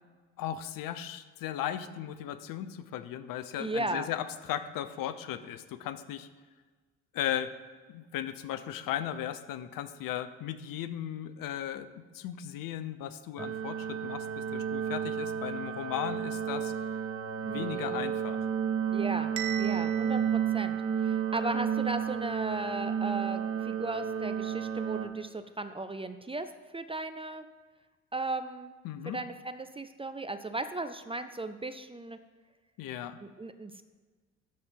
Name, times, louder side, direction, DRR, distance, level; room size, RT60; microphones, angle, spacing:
voice 1, 0.4-6.3 7.1-7.5 7.9-16.7 17.5-18.4 28.8-29.2 32.8-33.2, left 11 dB, 55° left, 12 dB, 0.8 m, -36 dB
voice 2, 3.6-4.1 17.5-18.0 18.9-19.3 19.6-20.8 21.0-26.5 26.7-27.4 28.1-28.7 29.1-32.2 33.2-33.8, right 2 dB, 15° right, 10 dB, 0.6 m, -36 dB
sound 1, 13.4-25.1, right 8 dB, 30° right, 1.1 m, -32 dB
Bell, 19.4-21.4, right 12 dB, 70° right, 0.8 m, -40 dB
12.5 x 4.3 x 5.3 m, 1.4 s
hypercardioid pair, 55°, 39 cm